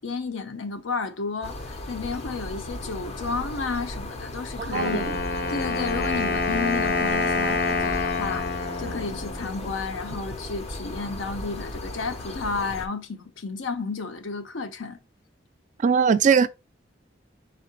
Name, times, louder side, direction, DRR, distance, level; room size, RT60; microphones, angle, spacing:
voice 1, 0.0-5.1 5.5-8.5 8.8-15.0, left 4 dB, 90° left, 0.7 m, -32 dB
sound 1, 1.4-12.9, left 1 dB, 35° left, 0.6 m, -36 dB
voice 2, 4.6-5.0 15.8-16.5, right 6 dB, 40° right, 0.3 m, -20 dB
Wind instrument woodwind instrument, 4.7-9.7, left 3 dB, 50° left, 1.0 m, -27 dB
4.2 x 3.7 x 2.4 m
head